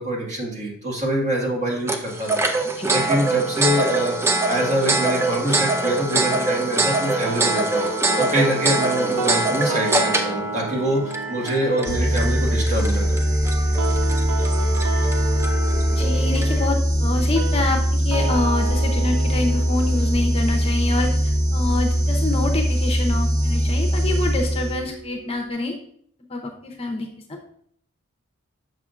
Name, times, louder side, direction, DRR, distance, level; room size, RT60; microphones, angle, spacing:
voice 1, 0.0-2.4 2.9-7.9 8.2-13.3, right 1 dB, 35° right, -2 dB, 1.6 m, -25 dB
sound 1, 1.9-16.7, right 2 dB, 10° right, 0.4 m, -24 dB
sound 2, 7.3-22.2, right 4 dB, 80° right, 0.4 m, -34 dB
sound 3, 11.9-25.0, equal, 50° right, 1.7 m, -21 dB
voice 2, 15.9-21.1 21.5-25.7 26.3-27.1, left 2 dB, 25° left, 2 dB, 0.7 m, -26 dB
6.6 x 5.9 x 2.5 m, 0.63 s
head